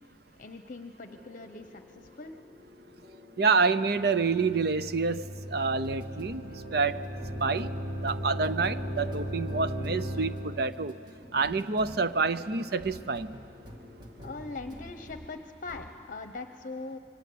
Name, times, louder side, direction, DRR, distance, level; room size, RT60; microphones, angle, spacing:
voice 1, 0.4-2.3 14.2-17.0, left 3 dB, 45° left, 7 dB, 0.9 m, -41 dB
sound 1, 1.1-15.3 15.7-16.0, equal, 25° right, 2.3 m, -49 dB
voice 2, 3.4-6.4 6.7-7.0 7.4-7.7 8.0-11.0 11.3-13.4, right 4 dB, 60° right, 13 dB, 0.7 m, -27 dB
sound 2, 3.9-10.7, equal, 85° right, 2.6 m, -37 dB
28.0 x 23.5 x 8.6 m, 2.6 s
head